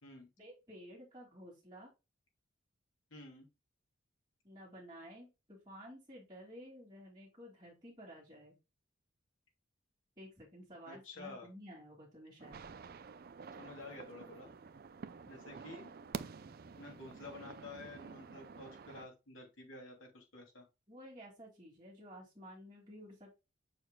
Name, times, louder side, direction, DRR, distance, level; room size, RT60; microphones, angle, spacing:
voice 1, 0.4-1.9 4.4-8.6 10.2-12.7 20.9-23.4, equal, 20° right, -6 dB, 2.5 m, -53 dB
voice 2, 3.1-3.5 10.8-11.5 13.6-14.5 15.3-15.9 16.8-20.7, left 2 dB, 80° left, 1 dB, 2.8 m, -51 dB
sound 1, 12.4-19.1, right 5 dB, 50° right, 0.4 m, -49 dB
6.9 x 6.3 x 2.3 m, 0.25 s
head